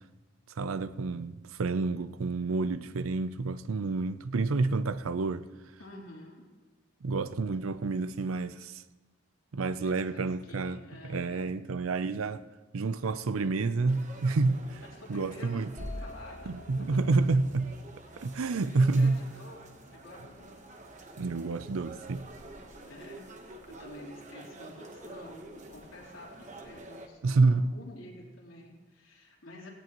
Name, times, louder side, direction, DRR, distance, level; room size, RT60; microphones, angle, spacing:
voice 1, 0.6-5.5 7.0-8.8 9.5-10.8 11.0-12.4 12.7-14.8 15.1-15.7 16.5-17.7 18.2-19.2 21.2-22.2 27.2-27.7, right 3 dB, 90° right, 0.5 m, -29 dB
voice 2, 5.8-6.4 9.6-11.7 14.9-17.1 18.5-20.6 22.8-29.7, left 1 dB, 75° left, 3.5 m, -50 dB
sound 1, 13.9-27.1, right 2 dB, 35° right, 1.1 m, -49 dB
sound 2, 15.8-19.6, left 1 dB, 20° right, 2.3 m, -46 dB
17.0 x 17.0 x 3.0 m
head